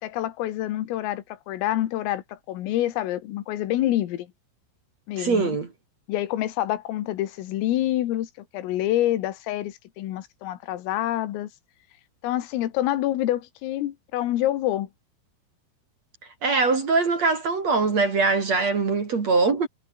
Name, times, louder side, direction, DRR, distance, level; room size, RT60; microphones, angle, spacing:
voice 1, 0.0-4.3 5.1-5.6 6.1-11.5 12.2-14.9, left 14 dB, 90° left, 4.4 m, -27 dB
voice 2, 5.2-5.7 16.4-19.7, right 4 dB, 40° right, 3.4 m, -22 dB
omnidirectional pair, 5.8 m